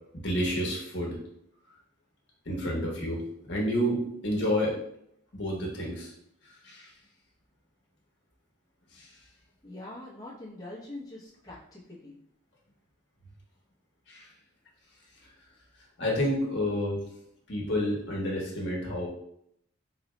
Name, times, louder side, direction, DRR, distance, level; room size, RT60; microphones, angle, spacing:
voice 1, 0.2-1.2 2.5-3.2 3.5-4.8 5.3-6.1 6.6-6.9 8.9-9.1 14.1-14.3 16.0-17.0 17.5-19.1, equal, 55° left, -3 dB, 0.9 m, -29 dB
voice 2, 9.6-12.2, left 2 dB, 15° left, -9 dB, 0.7 m, -43 dB
4.0 x 2.3 x 3.0 m, 0.72 s
head